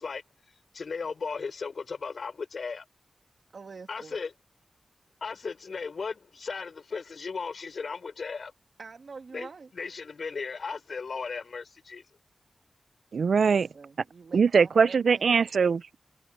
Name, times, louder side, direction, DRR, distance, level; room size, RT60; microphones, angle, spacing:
voice 1, 0.0-2.8 3.9-4.3 5.2-8.5 9.3-12.0, left 5 dB, 65° left, 5.1 m, -36 dB
voice 2, 3.5-4.2 8.8-9.7 13.4-15.5, right 4 dB, 65° right, 1.8 m, -46 dB
voice 3, 13.1-13.7 14.3-16.0, right 5 dB, 80° right, 0.4 m, -22 dB
wide cardioid pair, 100°, 0 cm